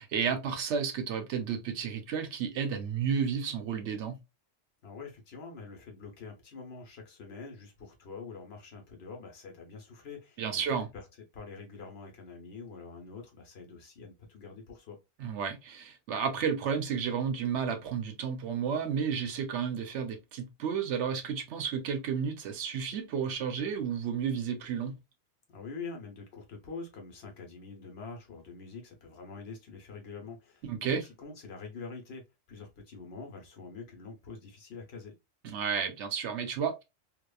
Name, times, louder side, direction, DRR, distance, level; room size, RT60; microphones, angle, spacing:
voice 1, 0.0-4.1 10.4-10.9 15.2-24.9 30.7-31.0 35.4-36.7, right 7 dB, 70° right, 0.9 m, -32 dB
voice 2, 4.8-11.1 11.3-15.0 25.5-32.2 32.5-35.2, left 4 dB, 60° left, 0.9 m, -45 dB
2.9 x 2.1 x 2.2 m
omnidirectional pair, 1.3 m